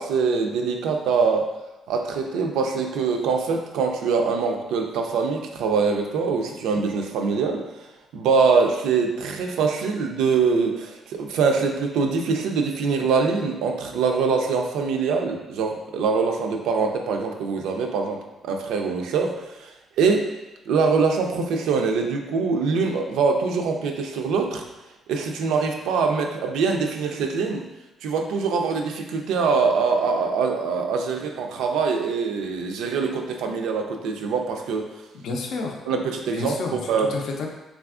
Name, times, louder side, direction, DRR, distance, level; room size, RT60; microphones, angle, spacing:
voice 1, 0.0-1.5 1.9-7.6 8.1-20.3 20.7-24.6 25.1-27.7 28.0-34.9 35.9-37.1, right 5 dB, 90° right, 3 dB, 0.3 m, -23 dB
voice 2, 35.1-35.8 36.3-37.5, left 3 dB, 75° left, 1 dB, 0.5 m, -30 dB
3.3 x 2.3 x 2.4 m, 1.0 s
cardioid pair, 90°, 0 cm